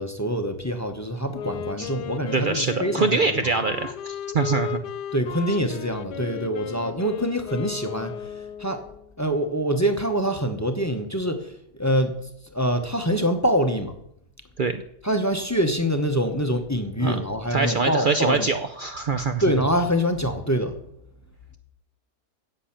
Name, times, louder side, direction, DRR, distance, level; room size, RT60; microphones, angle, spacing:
voice 1, 0.0-3.4 5.1-8.8 9.2-11.5 11.8-12.1 12.5-13.9 15.0-18.5 19.4-20.8, equal, 15° left, 7 dB, 0.8 m, -25 dB
Wind instrument woodwind instrument, 1.3-9.1, left 9 dB, 80° left, 1.3 m, -35 dB
voice 2, 2.3-4.8 14.6-14.8 17.0-17.2 17.5-19.4, right 4 dB, 85° right, 8 dB, 0.4 m, -24 dB
10.0 x 7.8 x 8.8 m, 0.78 s
omnidirectional pair, 1.8 m